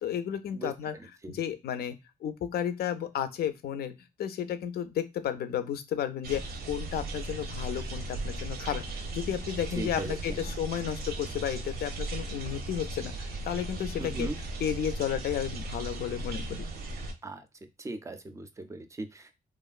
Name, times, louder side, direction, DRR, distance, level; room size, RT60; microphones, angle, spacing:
voice 1, 0.0-1.9 2.2-3.9 4.2-8.8 9.1-16.6, left 9 dB, 90° left, 11 dB, 0.4 m, -33 dB
sound 1, 6.2-17.1, right 2 dB, 80° right, 0.6 m, -37 dB
voice 2, 9.8-10.5 14.0-14.4 17.2-17.4 17.8-19.3, right 2 dB, 20° right, 8 dB, 0.4 m, -38 dB
3.0 x 2.4 x 2.3 m, 0.24 s
wide cardioid pair, 130°, 16 cm